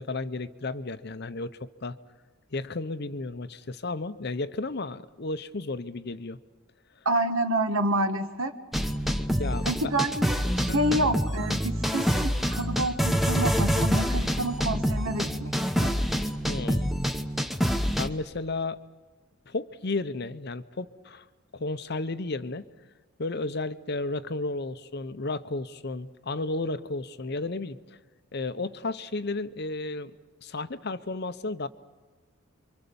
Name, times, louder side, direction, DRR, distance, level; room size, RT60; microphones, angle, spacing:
voice 1, 0.0-2.0 2.5-6.4 9.4-9.9 10.6-10.8 16.5-16.9 18.0-18.8 19.5-21.2 21.5-22.6 23.2-28.0 28.3-30.2 30.4-31.7, left 3 dB, 45° left, 12 dB, 0.7 m, -33 dB
voice 2, 7.0-8.5 9.7-15.5 15.8-16.0, right 1 dB, 70° right, 7 dB, 1.6 m, -28 dB
sound 1, 8.7-18.1, equal, ahead, 0.9 m, -26 dB
28.5 x 24.5 x 7.0 m, 1.4 s
head